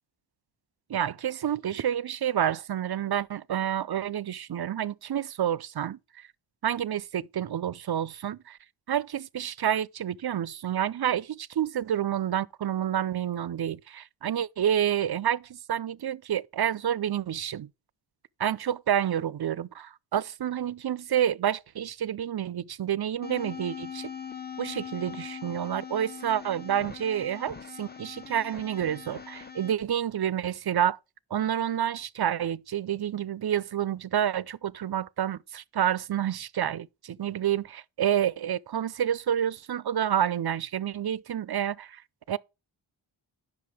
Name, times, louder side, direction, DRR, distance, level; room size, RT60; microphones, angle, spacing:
voice 1, 0.9-6.3 6.6-8.6 8.9-17.7 18.4-24.1 24.6-31.0 31.3-42.0 42.3-42.4, right 10 dB, 55° right, 0.5 m, -29 dB
sound 1, 23.2-29.7, left 7 dB, 20° left, 0.9 m, -41 dB
10.5 x 6.3 x 4.9 m
wide cardioid pair, 70°, 48 cm